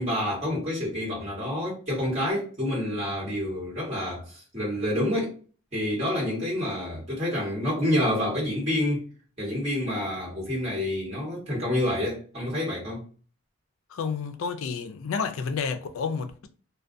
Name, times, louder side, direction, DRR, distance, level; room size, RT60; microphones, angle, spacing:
voice 1, 0.0-5.3 5.7-9.0 9.4-13.0, left 1 dB, 30° right, 1.2 m, -28 dB
voice 2, 13.9-16.5, left 5 dB, 65° left, 0.3 m, -30 dB
2.3 x 2.1 x 2.5 m
head